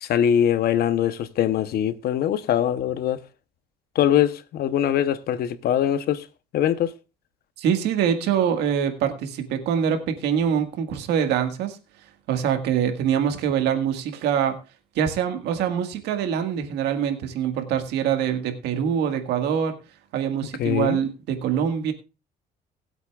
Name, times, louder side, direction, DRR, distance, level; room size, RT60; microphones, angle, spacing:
voice 1, 0.0-3.2 3.9-6.3 6.5-6.9 20.6-21.0, left 10 dB, 65° left, 1.0 m, -22 dB
voice 2, 7.6-11.8 12.3-14.6 15.0-19.8 20.1-21.9, right 8 dB, 85° right, 1.8 m, -24 dB
20.0 x 8.2 x 2.4 m
cardioid pair, 110°, 17 cm